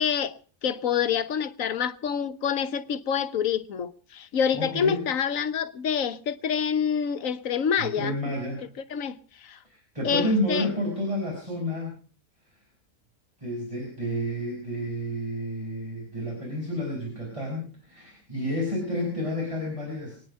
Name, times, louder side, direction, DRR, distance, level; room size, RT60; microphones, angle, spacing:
voice 1, 0.0-8.2 8.9-9.2 9.4-9.6 10.0-10.7, left 7 dB, 70° left, 1.3 m, -27 dB
voice 2, 4.6-5.1 7.8-8.6 9.6-11.9 13.4-20.2, left 1 dB, 20° right, 5.4 m, -30 dB
24.0 x 9.5 x 5.3 m
omnidirectional pair, 1.5 m